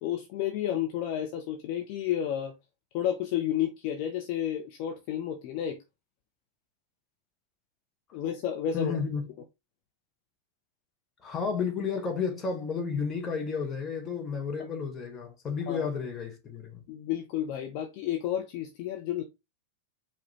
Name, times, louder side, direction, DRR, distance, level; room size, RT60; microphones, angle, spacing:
voice 1, 0.0-2.5 2.9-5.8 8.1-9.0 15.7-15.9 16.9-19.2, left 10 dB, 45° left, 0.7 m, -31 dB
voice 2, 8.7-9.2 11.2-16.8, left 5 dB, 20° left, 1.3 m, -32 dB
4.9 x 2.9 x 3.1 m
figure-of-eight pair, 90°, 0 cm